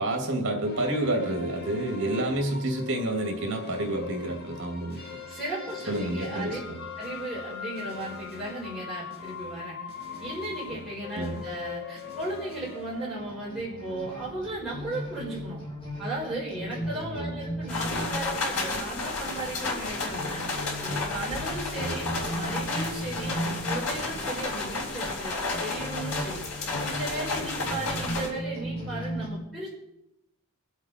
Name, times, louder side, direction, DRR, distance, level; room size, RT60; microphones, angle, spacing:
voice 1, 0.0-5.0 5.9-6.8 11.1-11.4 17.1-17.4 21.8-22.2, right 1 dB, 55° right, 2 dB, 2.7 m, -29 dB
sound 1, 0.6-13.1, left 5 dB, 45° left, 1.9 m, -41 dB
voice 2, 5.3-6.6 7.0-9.7 10.2-15.6 16.0-29.8, right 2 dB, ahead, -9 dB, 4.3 m, -36 dB
sound 2, 13.2-29.3, equal, 25° left, 3.9 m, -37 dB
sound 3, 17.7-28.3, left 3 dB, 85° left, 4.1 m, -32 dB
21.5 x 8.1 x 4.6 m, 0.82 s
head